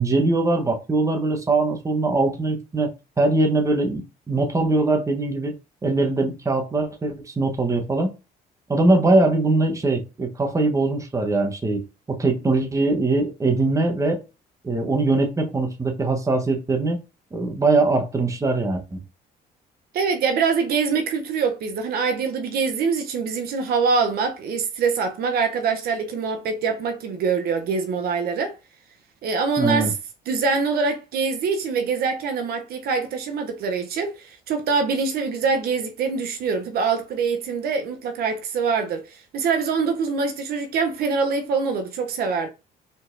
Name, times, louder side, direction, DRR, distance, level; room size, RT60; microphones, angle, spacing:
voice 1, 0.0-5.5 5.8-8.1 8.7-14.2 14.6-17.0 17.3-19.0 29.6-29.9, right 2 dB, 20° right, 1.0 m, -22 dB
voice 2, 19.9-28.6 29.2-29.9 30.3-42.5, right 5 dB, 65° right, 0.7 m, -24 dB
4.6 x 3.9 x 2.6 m
cardioid pair, 110°, 17 cm